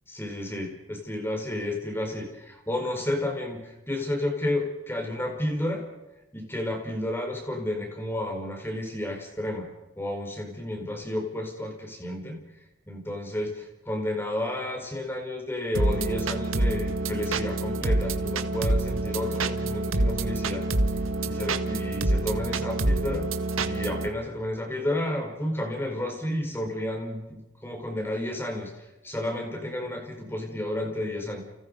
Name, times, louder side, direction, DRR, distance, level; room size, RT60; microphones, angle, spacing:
voice 1, 0.1-5.8 6.3-9.7 10.0-12.4 12.9-20.6 21.3-23.3 23.6-28.7 29.0-31.4, left 1 dB, 10° left, 3 dB, 4.7 m, -31 dB
sound 1, 15.7-24.1, right 2 dB, 90° right, 1.7 m, -27 dB
30.0 x 29.5 x 5.4 m, 0.98 s
head